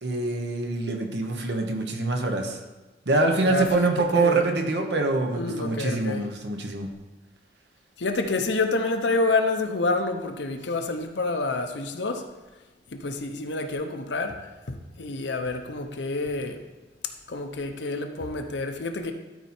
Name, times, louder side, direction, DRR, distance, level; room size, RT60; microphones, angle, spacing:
voice 1, 0.0-2.6 3.1-6.9, right 3 dB, 65° right, 4 dB, 1.1 m, -25 dB
voice 2, 3.4-4.4 5.3-6.3 8.0-12.2 12.9-14.4 14.7-16.6 17.3-19.1, left 3 dB, 70° left, 6 dB, 0.8 m, -28 dB
12.5 x 4.5 x 4.4 m, 1.2 s
head